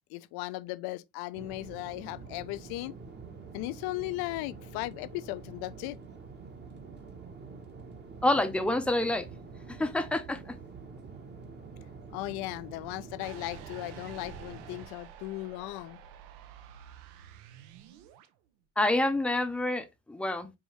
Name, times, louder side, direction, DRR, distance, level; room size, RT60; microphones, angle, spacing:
voice 1, 0.1-2.9 3.5-6.0 12.1-16.0, left 18 dB, 70° left, 0.5 m, -37 dB
sound 1, 1.3-14.9, right 4 dB, 25° right, 0.9 m, -47 dB
voice 2, 8.2-9.3 9.7-10.6 18.8-20.5, left 1 dB, 5° left, 0.5 m, -28 dB
sound 2, 13.2-18.3, right 8 dB, 85° right, 0.7 m, -50 dB
4.8 x 2.7 x 3.0 m
supercardioid pair, 105°, 39 cm